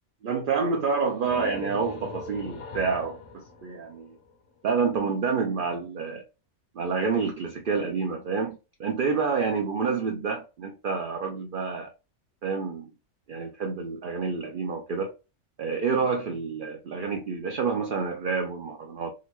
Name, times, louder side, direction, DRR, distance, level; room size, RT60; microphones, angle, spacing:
voice 1, 0.2-4.1 4.6-6.2 6.8-11.9 12.4-12.9 13.3-15.1 15.6-19.1, right 5 dB, 60° right, 0.6 m, -28 dB
sound 1, 0.8-4.5, left 3 dB, 65° left, 1.2 m, -40 dB
3.8 x 2.1 x 3.0 m
omnidirectional pair, 1.4 m